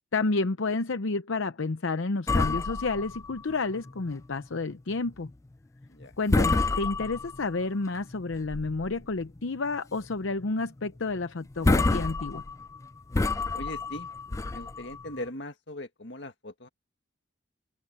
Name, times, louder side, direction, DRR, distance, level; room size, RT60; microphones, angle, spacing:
voice 1, 0.1-5.3 6.2-12.4, left 3 dB, 80° left, 0.7 m, -30 dB
sound 1, 2.3-4.1 4.4-4.6 5.1-5.3 5.8-6.0 6.3-7.6 8.1-9.0 9.4-9.5 9.9-10.1 10.4-10.5 11.2-11.3 11.5-15.2, left 3 dB, 15° left, 0.3 m, -28 dB
voice 2, 13.5-14.1 14.5-16.7, left 1 dB, 60° left, 2.0 m, -40 dB
open air
head